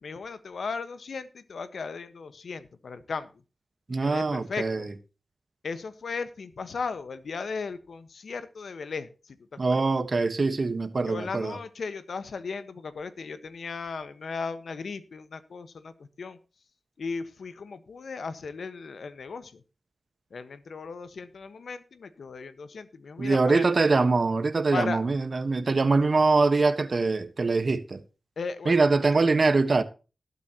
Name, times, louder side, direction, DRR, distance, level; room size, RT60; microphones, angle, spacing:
voice 1, 0.0-3.3 3.9-4.9 5.6-9.4 9.7-9.9 11.0-16.4 17.0-19.6 20.3-23.7 24.7-25.0 28.4-29.0, left 4 dB, 80° left, 1.3 m, -36 dB
voice 2, 3.9-4.9 9.6-11.6 23.2-28.0 28.6-29.8, right 3 dB, 55° right, 1.3 m, -23 dB
19.0 x 8.3 x 3.0 m
cardioid pair, 60°, 0 cm